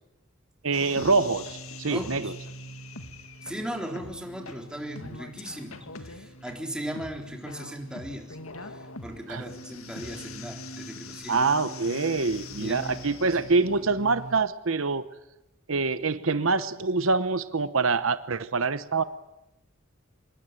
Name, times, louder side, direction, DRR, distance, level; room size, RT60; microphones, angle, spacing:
voice 1, 0.6-2.3 9.3-9.4 11.3-15.0 15.7-19.0, right 4 dB, 75° right, 13 dB, 1.0 m, -25 dB
sound 1, 0.7-14.3, left 2 dB, 85° left, 2.1 m, -42 dB
voice 2, 1.8-2.3 3.4-11.5 12.6-13.4, equal, 5° right, 2 dB, 3.8 m, -38 dB
26.0 x 22.0 x 9.1 m, 0.90 s
head